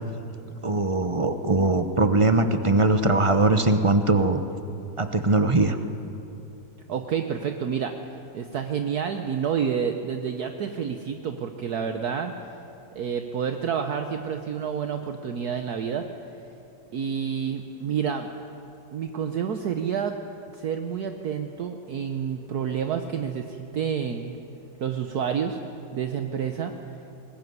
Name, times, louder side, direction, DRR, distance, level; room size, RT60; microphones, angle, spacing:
voice 1, 0.6-4.4 5.0-5.8, right 2 dB, 30° right, 9 dB, 0.5 m, -21 dB
voice 2, 6.9-7.9 8.3-12.3 12.9-16.0 16.9-18.3 18.9-20.2 20.5-24.3 24.8-25.6 25.9-26.7, right 7 dB, 60° right, 6 dB, 1.3 m, -29 dB
20.5 x 19.0 x 9.6 m, 3.0 s
omnidirectional pair, 2.0 m